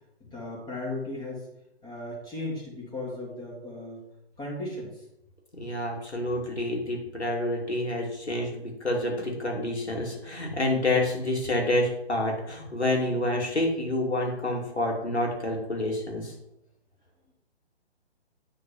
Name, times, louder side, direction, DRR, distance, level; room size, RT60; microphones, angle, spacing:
voice 1, 0.2-1.5 1.8-4.0 4.4-5.0, left 2 dB, 10° left, -5 dB, 1.7 m, -36 dB
voice 2, 5.5-16.3, left 1 dB, 80° left, -1 dB, 2.9 m, -28 dB
8.6 x 4.1 x 5.6 m, 0.84 s
figure-of-eight pair, 135°, 33 cm